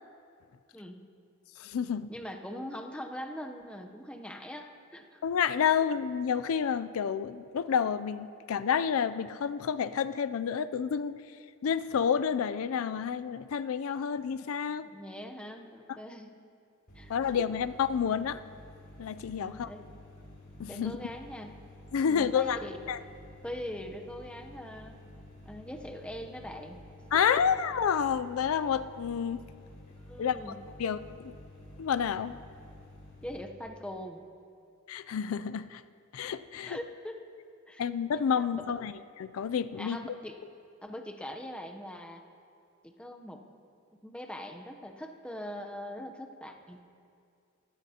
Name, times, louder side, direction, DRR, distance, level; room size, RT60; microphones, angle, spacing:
voice 1, 1.6-2.1 5.2-11.2 11.6-14.9 17.1-18.4 19.0-19.7 20.6-21.0 21.9-22.6 22.9-23.0 27.1-29.5 30.2-30.4 30.8-31.4 31.8-32.4 34.9-35.8 36.1-36.8 37.8-38.9 39.2-40.0, left 7 dB, 75° left, 13 dB, 0.4 m, -29 dB
voice 2, 2.1-5.2 14.9-16.3 16.9-17.3 19.4-19.8 20.7-21.5 22.0-22.8 23.4-25.0 25.5-26.8 27.1-27.4 30.1-30.6 33.2-34.2 36.6-37.2 37.7-37.8 38.4-38.5 39.8-40.4 40.8-42.2 42.8-43.4 44.0-46.8, left 1 dB, 5° left, 3 dB, 0.7 m, -42 dB
sound 1, 16.9-33.4, left 1 dB, 45° left, 4.1 m, -51 dB
24.0 x 13.5 x 2.9 m, 2.4 s
head